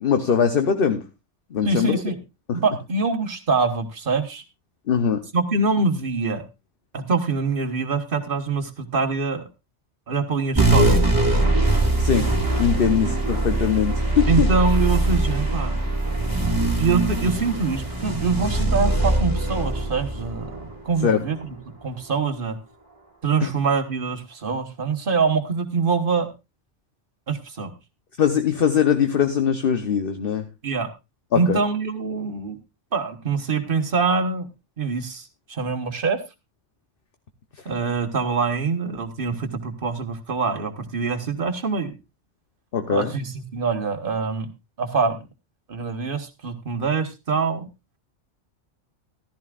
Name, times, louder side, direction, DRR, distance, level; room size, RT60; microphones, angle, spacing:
voice 1, 0.0-1.0 1.5-2.0 2.5-2.6 4.9-5.2 12.0-12.3 12.6-14.5 21.0-21.2 23.4-23.5 28.2-30.4 31.3-31.6 42.7-43.1, left 7 dB, 55° left, 7 dB, 1.0 m, -21 dB
voice 2, 1.6-2.2 2.5-4.4 5.3-6.4 6.9-9.4 10.1-11.0 14.3-15.8 16.8-21.6 21.8-22.6 23.2-26.3 27.3-27.7 30.6-30.9 31.3-32.6 32.9-34.5 34.8-36.2 37.6-41.9 42.9-44.5 44.8-45.3 45.7-47.7, right 4 dB, 50° right, 8 dB, 1.4 m, -24 dB
sound 1, 10.6-21.4, right 2 dB, 15° right, 2.1 m, -22 dB
14.5 x 13.0 x 2.4 m, 0.25 s
omnidirectional pair, 1.2 m